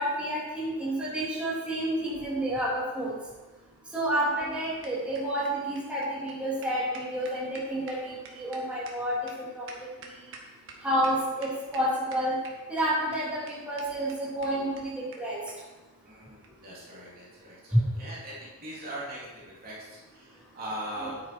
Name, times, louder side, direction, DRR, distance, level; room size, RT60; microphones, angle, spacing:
voice 1, 0.0-3.1 3.9-9.7 10.8-12.3 12.7-15.4 17.7-17.8 21.0-21.1, right 1 dB, 5° right, -8 dB, 3.3 m, -29 dB
sound 1, 4.0-10.7 11.0-11.1 11.4-11.8 12.1-12.8 13.1-13.2 13.5-13.6 13.8-13.9 14.1-14.2 14.4-14.5 14.8-14.9 15.1-15.2 15.5-15.6 16.4-16.6, right 4 dB, 60° right, 1.7 m, -47 dB
voice 2, 16.0-21.2, right 1 dB, 45° right, -6 dB, 3.2 m, -41 dB
9.8 x 9.1 x 4.6 m, 1.2 s
head